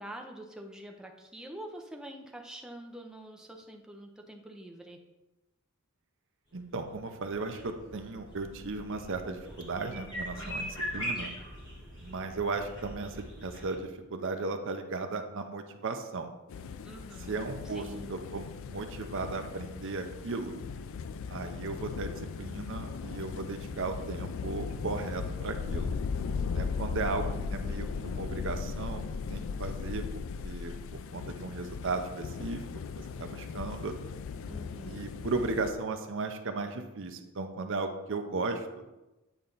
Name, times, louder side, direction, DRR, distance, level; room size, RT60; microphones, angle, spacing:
voice 1, 0.0-5.0 10.4-10.9 16.8-18.3 27.0-27.5 34.4-35.1, right 1 dB, 5° right, 2 dB, 0.7 m, -46 dB
sound 1, 6.5-13.8, equal, 20° left, 2.2 m, -41 dB
voice 2, 6.5-10.7 10.9-11.3 12.0-16.3 17.3-20.6 21.3-22.1 22.4-25.9 26.5-29.0 29.3-30.0 30.4-30.7 31.1-32.6 33.2-33.9 34.9-38.8, right 3 dB, 60° right, 6 dB, 0.7 m, -36 dB
sound 2, 16.5-35.7, left 5 dB, 60° left, 0.3 m, -37 dB
8.8 x 4.3 x 3.9 m, 1.0 s
head